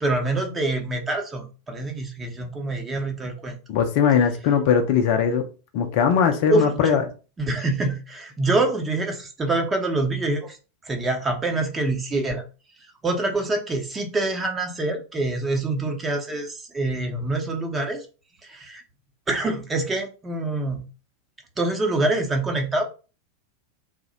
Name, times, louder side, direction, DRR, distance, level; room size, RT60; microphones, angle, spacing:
voice 1, 0.0-3.6 6.5-7.0 7.4-10.6 10.9-12.4 13.0-18.0 18.4-18.8 19.3-20.8 21.6-22.8, right 2 dB, 15° right, 3 dB, 0.7 m, -25 dB
voice 2, 3.7-5.4 5.7-7.0, left 7 dB, 45° left, 6 dB, 0.5 m, -20 dB
2.7 x 2.1 x 3.9 m, 0.34 s
figure-of-eight pair, 90°, 0 cm